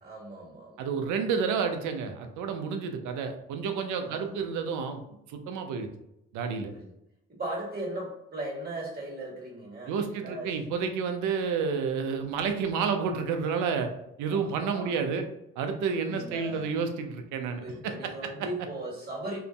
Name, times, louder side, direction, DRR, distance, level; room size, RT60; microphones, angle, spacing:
voice 1, 0.0-1.0 4.0-4.4 6.7-6.9 7.3-10.6 14.3-15.0 16.0-16.7 17.6-19.4, right 1 dB, 30° right, -4 dB, 1.4 m, -38 dB
voice 2, 0.8-5.0 5.3-5.9 6.3-6.7 9.9-13.9 14.2-15.3 15.6-18.3, right 5 dB, 75° right, 6 dB, 0.5 m, -30 dB
2.7 x 2.5 x 2.2 m, 0.84 s
supercardioid pair, 60°, 30 cm